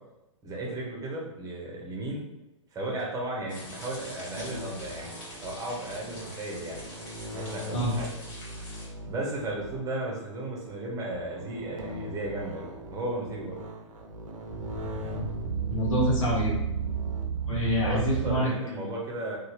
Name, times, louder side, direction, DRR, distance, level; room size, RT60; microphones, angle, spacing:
voice 1, 0.4-2.3 2.7-5.1 5.4-6.8 7.3-8.1 9.0-13.5 17.8-19.4, right 2 dB, 20° right, -3 dB, 0.8 m, -34 dB
sound 1, 3.4-10.0 10.6-10.7 11.1-18.4, right 4 dB, 80° right, 0.5 m, -36 dB
sound 2, 3.5-8.9, left 1 dB, 40° left, 1.3 m, -45 dB
voice 2, 15.7-16.6 17.5-18.5, equal, 75° left, -4 dB, 0.9 m, -26 dB
2.7 x 2.2 x 3.0 m, 0.94 s
hypercardioid pair, 115°, 17 cm